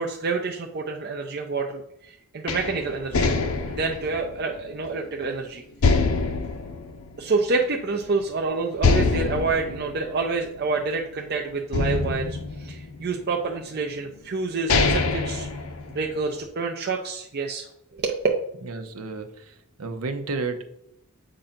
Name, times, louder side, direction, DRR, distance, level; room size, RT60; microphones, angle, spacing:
voice 1, 0.0-3.3 3.8-5.6 7.2-15.5 15.9-17.7 17.9-18.3, right 4 dB, 45° right, 1 dB, 0.5 m, -28 dB
sound 1, 2.5-5.3 5.8-7.8 8.1-8.2 8.8-11.2 11.7-13.3 14.1-14.2 14.5-16.3, left 4 dB, 75° left, 0.6 m, -25 dB
voice 2, 18.7-20.6, right 3 dB, 80° right, 7 dB, 0.8 m, -32 dB
7.6 x 2.6 x 5.7 m, 0.77 s
head